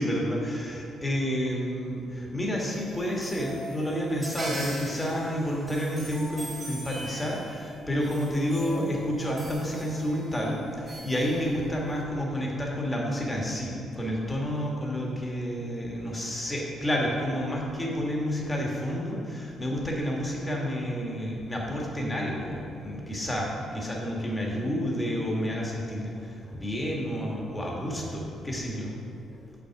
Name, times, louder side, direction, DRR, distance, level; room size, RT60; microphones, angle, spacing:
voice 1, 0.0-29.0 29.3-29.4, equal, 15° left, -2 dB, 1.6 m, -30 dB
sound 1, 2.5-12.0, right 1 dB, 30° right, 1.4 m, -40 dB
6.6 x 5.8 x 4.7 m, 2.7 s
cardioid pair, 90°, 0 cm